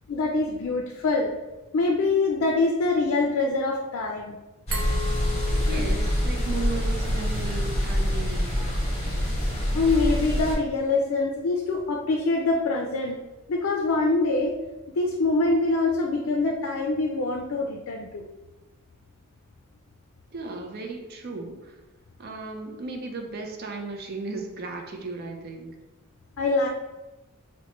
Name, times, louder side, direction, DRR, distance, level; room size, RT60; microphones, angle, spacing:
voice 1, 0.1-1.3 1.7-4.4 9.7-13.2 13.5-14.5 15.0-18.2 26.4-26.7, left 3 dB, 75° left, 1 dB, 0.4 m, -24 dB
sound 1, 4.7-10.5, equal, 30° left, 0.9 m, -25 dB
Glass, 4.7-7.5, left 2 dB, 90° right, 0.7 m, -37 dB
voice 2, 5.7-8.7 20.3-21.8 22.2-25.7, right 3 dB, 45° right, 3 dB, 0.5 m, -35 dB
4.3 x 2.1 x 2.9 m, 1.1 s
head